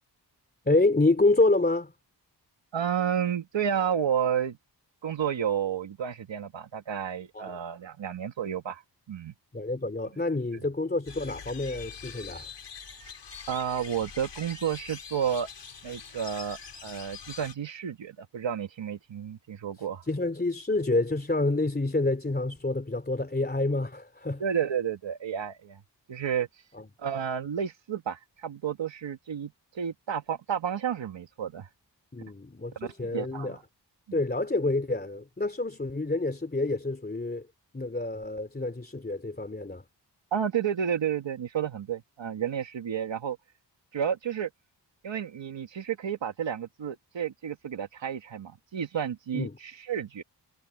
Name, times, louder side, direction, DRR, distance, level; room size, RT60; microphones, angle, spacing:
voice 1, 0.6-1.9 7.3-7.5 9.5-12.5 20.0-24.4 26.7-26.9 32.1-33.6 34.1-37.5 37.7-39.8 49.3-49.6, left 2 dB, 20° left, 3.0 m, -28 dB
voice 2, 2.7-4.6 5.0-8.8 9.1-9.3 13.5-15.5 15.8-20.0 24.4-25.8 26.1-26.5 27.0-31.7 32.8-33.6 34.1-34.2 40.3-43.4 43.9-44.5 45.0-50.2, right 8 dB, 85° right, 2.0 m, -31 dB
sound 1, 11.1-17.5, left 6 dB, 70° left, 4.7 m, -44 dB
wide cardioid pair, 100°, 43 cm